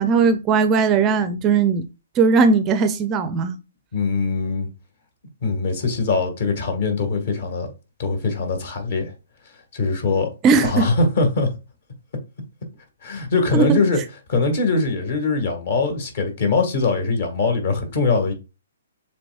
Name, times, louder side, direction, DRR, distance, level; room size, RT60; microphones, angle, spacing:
voice 1, 0.0-1.9 2.2-3.6 10.4-10.9 13.5-13.8, right 5 dB, 20° right, 0.4 m, -18 dB
voice 2, 3.9-4.7 5.4-7.7 8.0-9.1 9.7-10.3 10.6-11.5 13.0-14.0 14.3-18.3, left 3 dB, 55° left, 1.7 m, -22 dB
6.8 x 3.3 x 2.3 m
hypercardioid pair, 150°, 0 cm